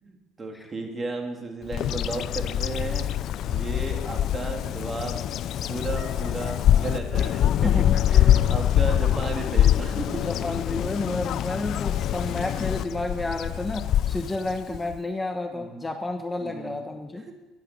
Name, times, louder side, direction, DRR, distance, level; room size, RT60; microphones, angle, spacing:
voice 1, 0.0-3.1 3.5-5.2 5.7-10.2 14.7-14.8 15.5-15.8 16.4-16.9 17.3-17.4, right 3 dB, 25° right, 2 dB, 3.0 m, -34 dB
Bird vocalization bird call bird song, 1.7-15.0, left 11 dB, 60° left, 0.4 m, -24 dB
voice 2, 7.6-8.0 10.2-17.2, left 2 dB, 15° left, 6 dB, 1.1 m, -31 dB
15.0 x 10.5 x 7.1 m, 1.1 s
cardioid pair, 100°, 0 cm